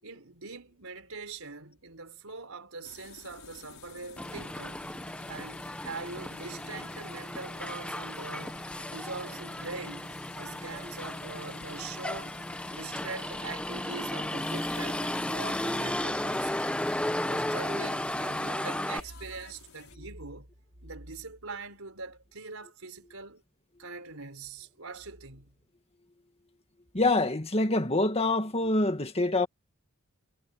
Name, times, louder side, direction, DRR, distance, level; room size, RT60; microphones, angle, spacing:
voice 1, 0.0-4.8 5.3-10.1 10.4-12.3 12.7-16.6 17.2-20.5 20.8-23.4 23.8-25.5, right 3 dB, 70° right, 5.2 m, -42 dB
sound 1, 2.8-20.0, left 6 dB, 70° left, 5.6 m, -51 dB
Motor vehicle (road), 4.2-19.0, left 1 dB, 5° left, 0.9 m, -34 dB
voice 2, 26.9-29.5, left 2 dB, 25° left, 1.9 m, -25 dB
head